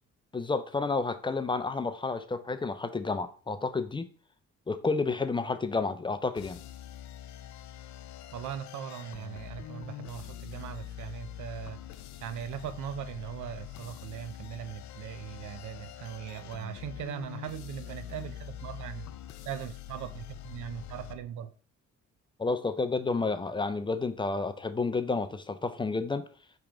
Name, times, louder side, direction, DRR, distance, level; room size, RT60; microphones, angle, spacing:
voice 1, 0.3-4.1 4.7-6.6 22.4-26.3, left 3 dB, 15° left, 0.4 m, -30 dB
sound 1, 6.4-21.2, left 12 dB, 70° left, 0.5 m, -44 dB
voice 2, 8.3-11.8 12.2-19.1 19.5-21.5, right 10 dB, 75° right, 0.5 m, -39 dB
4.8 x 3.0 x 3.7 m
cardioid pair, 90°, 30 cm